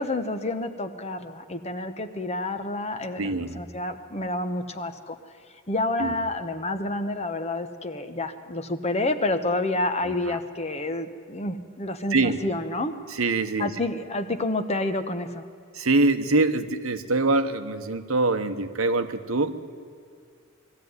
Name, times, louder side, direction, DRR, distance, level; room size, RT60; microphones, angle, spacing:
voice 1, 0.0-5.2 5.7-12.9 13.6-15.5, left 2 dB, 30° left, 8 dB, 1.0 m, -29 dB
voice 2, 3.2-3.6 6.0-6.1 10.0-10.4 12.1-12.4 13.1-13.7 15.7-19.8, right 3 dB, 75° right, 10 dB, 1.1 m, -24 dB
20.5 x 14.0 x 9.5 m, 2.2 s
head